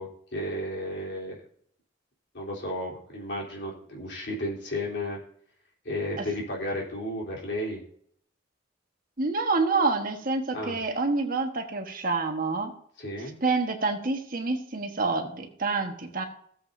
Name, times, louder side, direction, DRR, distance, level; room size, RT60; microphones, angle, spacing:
voice 1, 0.0-1.4 2.3-5.2 5.8-7.8 10.5-10.8 13.0-13.4, left 1 dB, 60° left, -3 dB, 3.6 m, -33 dB
voice 2, 9.2-12.7 13.4-16.2, right 3 dB, 45° right, 4 dB, 1.3 m, -27 dB
17.5 x 7.6 x 2.7 m, 0.64 s
head